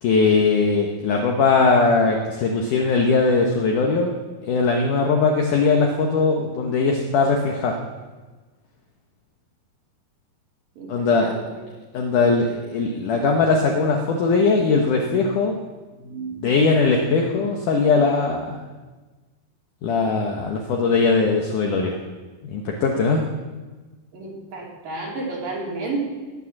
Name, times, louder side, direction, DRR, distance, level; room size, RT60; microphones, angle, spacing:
voice 1, 0.0-4.1 4.5-7.8 10.9-11.3 11.9-15.6 16.4-18.6 19.8-22.0 22.4-23.2, left 4 dB, 65° left, 1 dB, 2.4 m, -20 dB
voice 2, 10.8-11.6 15.9-16.5 24.1-26.1, right 3 dB, 60° right, -3 dB, 4.7 m, -31 dB
19.0 x 9.3 x 7.3 m, 1.3 s
omnidirectional pair, 4.6 m